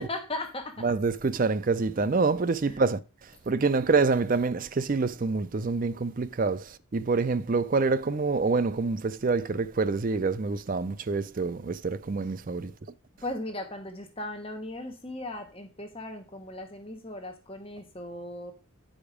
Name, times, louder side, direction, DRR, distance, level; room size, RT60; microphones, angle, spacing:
voice 1, 0.0-0.9 2.7-2.8 13.2-18.5, left 1 dB, 25° left, 1.0 m, -37 dB
voice 2, 0.8-3.0 3.5-6.6 6.9-12.7, right 4 dB, 40° right, 0.5 m, -26 dB
9.6 x 5.0 x 5.0 m
head